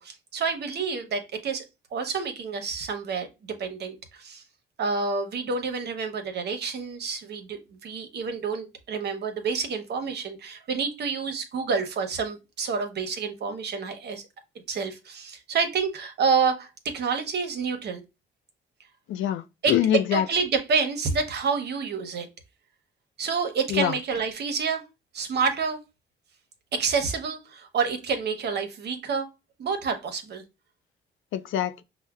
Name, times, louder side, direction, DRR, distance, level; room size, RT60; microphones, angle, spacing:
voice 1, 0.0-1.6 1.9-4.4 4.8-14.2 14.7-18.0 19.6-19.8 20.1-22.3 23.2-24.8 25.1-25.8 26.7-29.3 29.6-30.4, right 5 dB, 55° right, 0.8 m, -28 dB
voice 2, 19.1-20.3 23.7-23.9 31.3-31.8, left 10 dB, 75° left, 0.4 m, -24 dB
5.5 x 2.1 x 2.3 m
cardioid pair, 90°, 20 cm